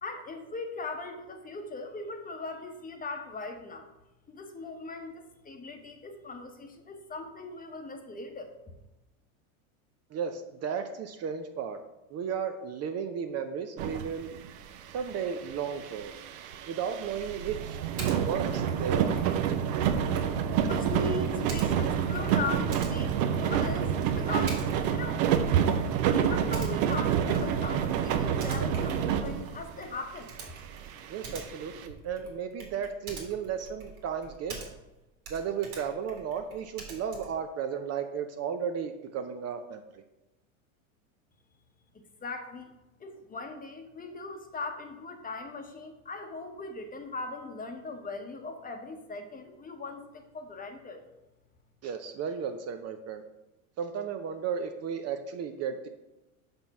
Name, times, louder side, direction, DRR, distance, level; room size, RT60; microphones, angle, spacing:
voice 1, 0.0-3.9 4.3-8.7 19.8-20.1 20.7-24.6 24.9-25.3 26.1-30.3 42.2-42.7 43.0-51.0, left 3 dB, 20° left, 5 dB, 0.9 m, -39 dB
voice 2, 10.1-11.8 12.1-14.3 14.9-16.1 16.7-17.8 18.1-19.2 31.1-34.6 35.3-40.0 51.8-53.2 53.8-55.9, right 7 dB, 35° right, 7 dB, 0.6 m, -34 dB
sound 1, 13.8-14.6 14.9-29.9 30.4-30.5 30.7-31.9, right 8 dB, 70° right, 0.8 m, -28 dB
Typing, 18.0-18.2 18.5-35.0 35.2-37.4, right 4 dB, 90° right, 2.1 m, -46 dB
5.9 x 5.3 x 5.3 m, 1.0 s
hypercardioid pair, 100°, 42 cm